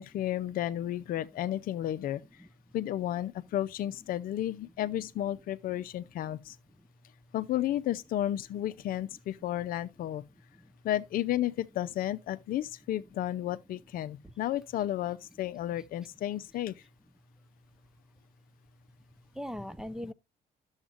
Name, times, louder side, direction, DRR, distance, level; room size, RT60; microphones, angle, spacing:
voice 1, 0.0-2.2 2.7-6.6 7.3-10.2 10.8-16.7, left 12 dB, 65° left, 0.6 m, -32 dB
voice 2, 2.4-2.7 6.8-6.9 10.5-10.7 14.2-14.3 15.8-15.9 19.3-20.1, equal, 5° right, 0.5 m, -41 dB
11.0 x 7.2 x 2.5 m
supercardioid pair, 80°, 16 cm